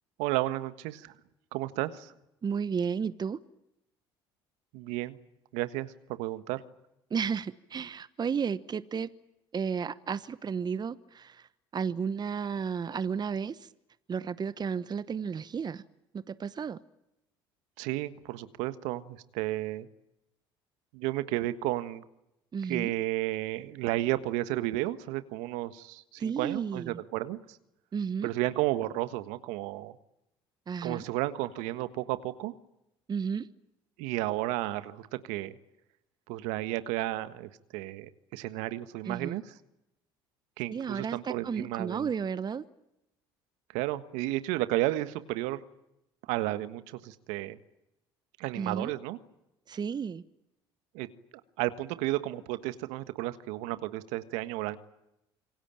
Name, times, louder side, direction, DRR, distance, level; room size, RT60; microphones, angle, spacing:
voice 1, 0.2-1.1 1.5-2.1 4.7-5.2 5.5-6.6 17.8-19.9 20.9-22.0 22.7-27.6 28.2-30.0 30.8-32.5 34.0-35.6 36.3-39.5 40.6-42.1 43.7-45.6 46.3-47.6 48.4-49.2 50.9-51.1 51.6-54.8, right 17 dB, 75° right, 13 dB, 1.5 m, -32 dB
voice 2, 2.4-3.4 7.1-9.1 9.5-13.7 14.1-15.8 16.3-16.8 22.5-22.9 26.2-27.0 27.9-28.3 30.7-31.0 33.1-33.5 39.0-39.4 40.7-42.6 48.6-48.9 49.7-50.2, right 6 dB, 35° right, 15 dB, 1.1 m, -33 dB
27.0 x 23.5 x 8.9 m, 0.87 s
hypercardioid pair, 65°, 12 cm